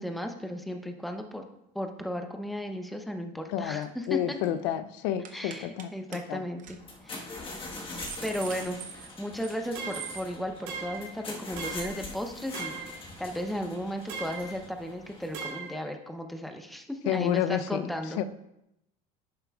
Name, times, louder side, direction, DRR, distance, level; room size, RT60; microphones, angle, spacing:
voice 1, 0.0-1.4 1.7-4.4 5.3-6.8 7.0-7.3 8.2-18.2, equal, ahead, 5 dB, 0.7 m, -35 dB
voice 2, 3.5-6.4 17.1-17.9 18.2-18.3, left 11 dB, 85° left, 11 dB, 0.6 m, -30 dB
sound 1, 3.8-4.1 4.3-4.6 5.2-5.9 6.1-6.2 6.6-6.8 7.1-7.3 7.7-9.6 9.9-10.3, right 7 dB, 40° right, 0.8 m, -43 dB
sound 2, 6.8-15.4, left 2 dB, 25° left, 1.4 m, -43 dB
sound 3, 9.8-10.2 10.7-11.1 11.6-12.0 12.5-13.0 14.1-14.5 15.3-15.8, right 5 dB, 85° right, 2.7 m, -38 dB
10.5 x 7.5 x 2.4 m, 0.84 s
cardioid pair, 130°, 20 cm